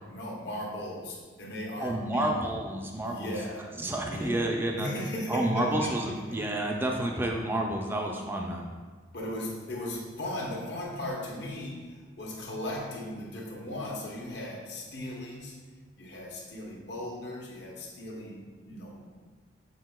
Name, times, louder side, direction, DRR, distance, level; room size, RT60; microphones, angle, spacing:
voice 1, 0.1-2.4 3.0-3.7 4.0-4.4 4.8-6.4 9.1-15.5 16.0-19.1, left 1 dB, 60° left, -2 dB, 0.9 m, -37 dB
voice 2, 1.8-3.3 3.8-8.7, right 1 dB, 10° right, 1 dB, 0.4 m, -30 dB
6.6 x 3.5 x 2.2 m, 1.4 s
head